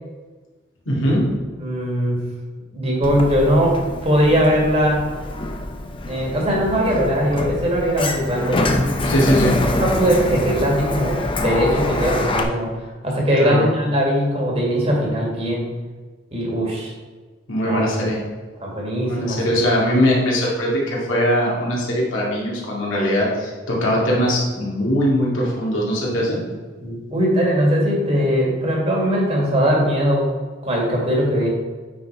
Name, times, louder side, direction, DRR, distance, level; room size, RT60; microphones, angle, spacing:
voice 1, 0.9-1.3 9.1-9.6 13.4-13.7 17.5-18.2 19.1-26.4, equal, 80° left, -4 dB, 2.3 m, -20 dB
voice 2, 1.6-2.2 2.7-5.1 6.1-8.7 9.6-12.7 13.0-15.7 16.3-16.9 17.6-17.9 18.6-19.8 26.1-26.2 26.8-30.3 30.6-31.5, equal, 30° right, -2 dB, 1.8 m, -20 dB
Sliding door, 3.0-12.4, left 2 dB, 25° left, 0.6 m, -25 dB
9.2 x 4.1 x 4.4 m, 1.4 s
head